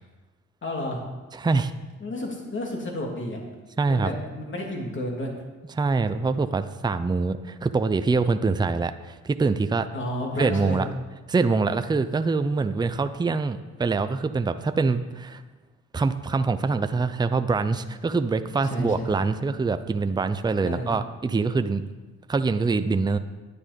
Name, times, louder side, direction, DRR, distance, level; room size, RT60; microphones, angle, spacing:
voice 1, 0.6-1.0 2.0-3.4 3.8-5.3 9.9-10.8 18.6-19.2 20.6-21.0, left 1 dB, 40° left, 0 dB, 2.9 m, -31 dB
voice 2, 1.3-1.7 3.8-4.1 5.7-9.9 10.4-10.9 11.3-15.4 15.9-21.9 22.3-23.2, right 4 dB, 15° right, 10 dB, 0.5 m, -24 dB
9.9 x 9.7 x 5.2 m, 1.2 s
cardioid pair, 90°, 30 cm